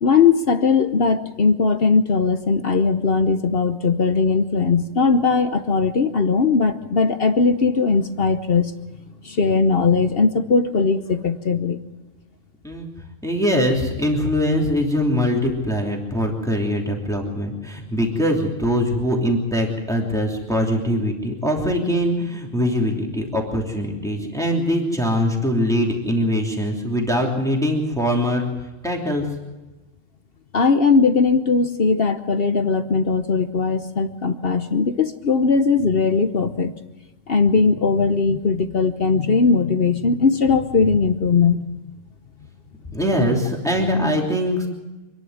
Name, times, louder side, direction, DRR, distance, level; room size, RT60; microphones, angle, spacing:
voice 1, 0.0-8.7 9.2-11.8 30.5-36.7 37.3-41.6, left 4 dB, 50° left, 10 dB, 1.1 m, -19 dB
voice 2, 13.2-28.5 28.8-29.3 42.9-44.7, equal, 5° left, 0 dB, 2.9 m, -22 dB
26.5 x 11.0 x 9.5 m, 1.1 s
omnidirectional pair, 1.3 m